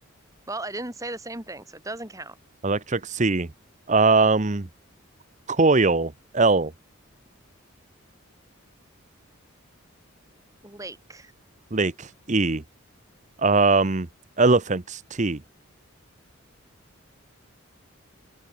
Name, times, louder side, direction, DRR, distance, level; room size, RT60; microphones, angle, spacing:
voice 1, 0.5-2.4 10.6-11.3, right 2 dB, 15° right, 3.9 m, -36 dB
voice 2, 2.6-3.5 3.9-4.7 5.5-6.7 11.7-12.6 13.4-14.1 14.4-15.4, right 3 dB, 35° right, 0.9 m, -21 dB
open air
head